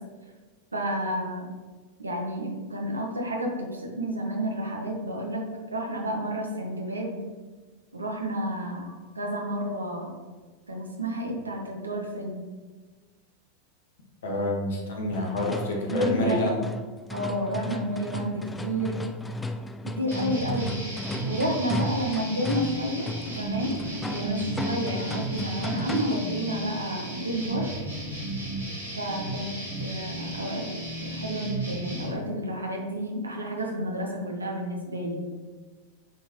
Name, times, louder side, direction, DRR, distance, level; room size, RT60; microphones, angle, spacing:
voice 1, 0.7-1.5 2.0-7.2 7.9-10.1 10.7-12.4 14.3-14.4 15.9-16.6 17.1-19.0 19.8-20.8 21.2-27.7 29.0-30.6 31.0-35.2, equal, 80° right, 1 dB, 1.1 m, -31 dB
voice 2, 14.2-16.5, left 1 dB, 60° left, -1 dB, 1.4 m, -27 dB
sound 1, 15.1-26.4, left 2 dB, 10° left, 0.3 m, -35 dB
sound 2, 20.1-32.1, right 2 dB, 90° left, 1.4 m, -34 dB
8.9 x 4.0 x 3.0 m, 1.4 s
figure-of-eight pair, 90°, 0 cm